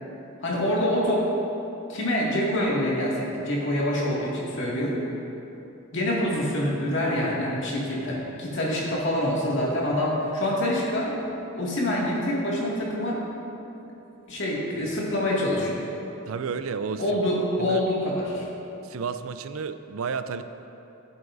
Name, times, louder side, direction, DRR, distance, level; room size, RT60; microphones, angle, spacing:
voice 1, 0.4-1.3 1.9-5.0 5.9-11.2 11.6-13.2 13.8-13.9 14.3-15.8 17.0-18.5, left 1 dB, 60° left, -5 dB, 2.0 m, -26 dB
voice 2, 16.3-17.0 17.6-17.8 18.8-20.4, right 5 dB, 75° right, 11 dB, 0.4 m, -31 dB
15.5 x 8.1 x 2.6 m, 3.0 s
head